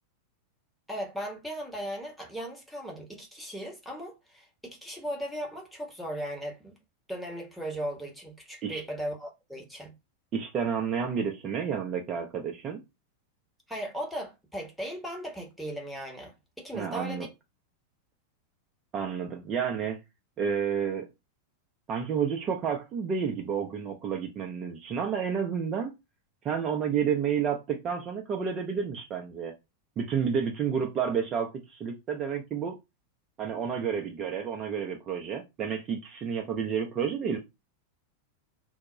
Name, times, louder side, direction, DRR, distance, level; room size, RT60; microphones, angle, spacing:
voice 1, 0.9-6.8 7.1-9.9 13.7-17.3, equal, ahead, 0.8 m, -37 dB
voice 2, 10.3-12.8 16.7-17.3 18.9-20.0 20.4-21.1 21.9-25.9 26.4-29.5 30.0-32.8 33.4-37.4, right 7 dB, 30° right, 0.4 m, -30 dB
2.2 x 2.0 x 3.6 m
figure-of-eight pair, 90°, 0 cm